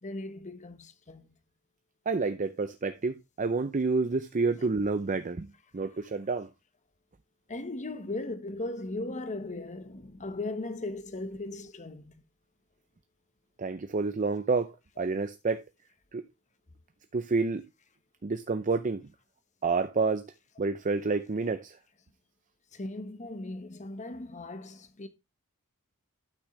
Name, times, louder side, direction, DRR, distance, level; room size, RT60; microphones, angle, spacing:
voice 1, 0.0-1.3 4.6-4.7 5.7-6.0 7.5-12.2 22.7-25.1, left 2 dB, 35° left, 1.2 m, -38 dB
voice 2, 2.1-5.5 5.7-6.5 13.6-15.6 16.1-16.2 17.1-17.6 18.2-19.0 19.6-20.2 20.6-21.8, right 4 dB, 35° right, 0.6 m, -29 dB
12.0 x 6.3 x 3.2 m
head